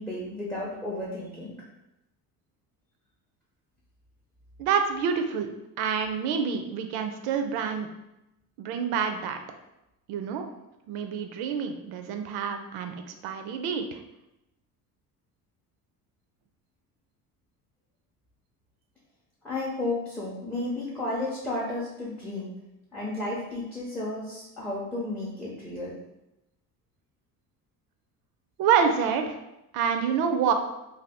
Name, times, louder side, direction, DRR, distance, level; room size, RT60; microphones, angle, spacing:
voice 1, 0.0-1.5 19.4-22.5 22.9-25.9, left 2 dB, 5° left, -6 dB, 0.4 m, -33 dB
voice 2, 4.6-5.5 5.8-7.9 8.6-9.4 10.1-10.5 10.9-12.9 13.2-14.0 28.6-29.4 29.7-30.5, right 7 dB, 85° right, 6 dB, 0.5 m, -27 dB
2.7 x 2.2 x 3.3 m, 0.91 s
cardioid pair, 150°, 37 cm